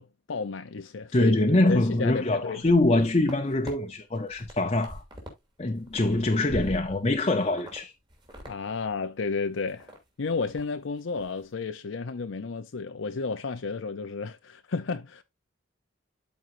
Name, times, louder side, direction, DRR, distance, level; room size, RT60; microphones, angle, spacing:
voice 1, 0.0-1.3 1.7-2.6 8.5-9.9 10.2-15.2, left 4 dB, 75° left, 0.6 m, -32 dB
voice 2, 1.1-5.0 5.6-7.9, left 2 dB, 30° left, 0.8 m, -24 dB
sound 1, 2.5-3.7 4.2-5.4 5.7-7.2 7.6-7.8 8.1-8.6 8.8-8.9 9.4-10.0 10.3-10.7 11.0-11.3, equal, 25° right, 2.7 m, -42 dB
12.5 x 4.5 x 2.6 m
head